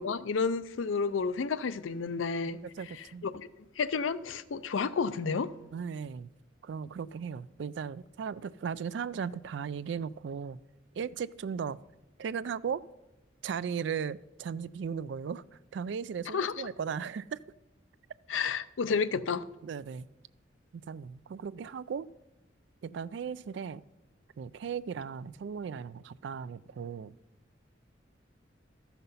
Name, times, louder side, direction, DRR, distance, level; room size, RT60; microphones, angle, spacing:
voice 1, 0.0-2.6 3.2-3.5 3.8-5.5 16.3-16.5 18.3-19.4, left 5 dB, 90° left, 0.5 m, -31 dB
voice 2, 2.8-3.2 5.7-6.3 6.6-10.6 10.9-11.8 12.2-12.8 13.4-17.4 18.4-18.5 19.6-20.1 20.7-22.1 22.8-23.8 24.4-27.1, right 6 dB, 65° right, 0.3 m, -37 dB
13.5 x 5.8 x 5.5 m
head